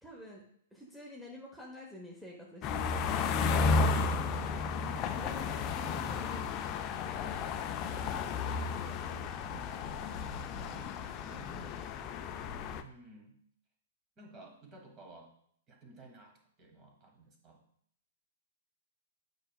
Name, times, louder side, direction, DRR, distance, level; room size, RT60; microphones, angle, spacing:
voice 1, 0.0-0.4 0.7-6.4, equal, ahead, -3 dB, 1.0 m, -49 dB
sound 1, 2.6-12.8, left 4 dB, 30° left, 0.4 m, -33 dB
voice 2, 7.0-9.8 10.4-11.9 12.8-13.4 14.2-15.3 15.7-17.6, right 2 dB, 25° right, 2 dB, 1.5 m, -54 dB
8.5 x 5.0 x 2.3 m, 0.66 s
figure-of-eight pair, 110°, 0 cm